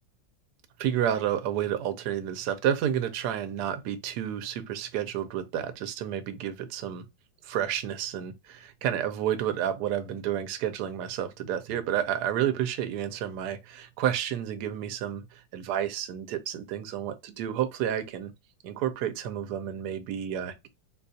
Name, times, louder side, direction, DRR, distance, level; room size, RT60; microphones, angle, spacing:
voice 1, 0.8-7.0 7.4-18.3 18.6-20.7, right 10 dB, 70° right, 1.1 m, -30 dB
3.9 x 2.3 x 2.6 m
omnidirectional pair, 2.0 m